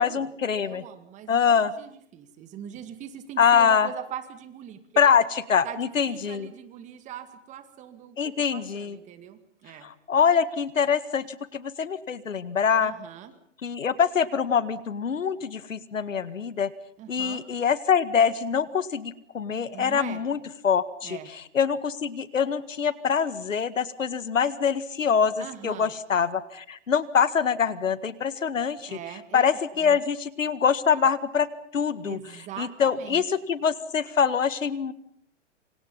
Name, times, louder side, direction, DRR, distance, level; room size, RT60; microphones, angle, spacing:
voice 1, 0.0-0.8 1.3-1.7 3.4-3.9 5.0-5.2 5.5-6.5 8.2-9.0 9.8-12.9 13.6-16.7 17.1-21.2 21.6-29.0 29.3-31.5 31.7-32.2 32.6-34.9, left 7 dB, 90° left, 16 dB, 1.9 m, -24 dB
voice 2, 0.6-5.1 5.6-9.9 12.8-13.3 17.0-17.5 19.7-20.2 21.0-21.3 25.4-25.9 28.9-30.0 32.0-33.4, right 9 dB, 20° right, 10 dB, 2.1 m, -41 dB
27.5 x 26.0 x 5.5 m, 0.67 s
hypercardioid pair, 145°, 38 cm